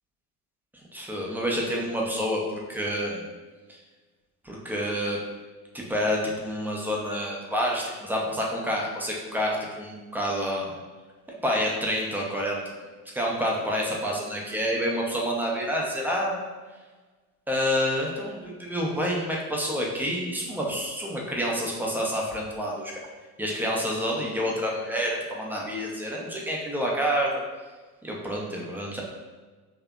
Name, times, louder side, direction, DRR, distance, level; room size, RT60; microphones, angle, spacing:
voice 1, 0.9-3.2 3.7-3.8 4.4-5.2 5.7-10.7 11.3-12.6 13.1-16.4 17.5-23.0 23.4-27.4 28.0-29.0, equal, 5° right, -2 dB, 0.9 m, -28 dB
5.6 x 3.3 x 2.4 m, 1.3 s
figure-of-eight pair, 65°, 45 cm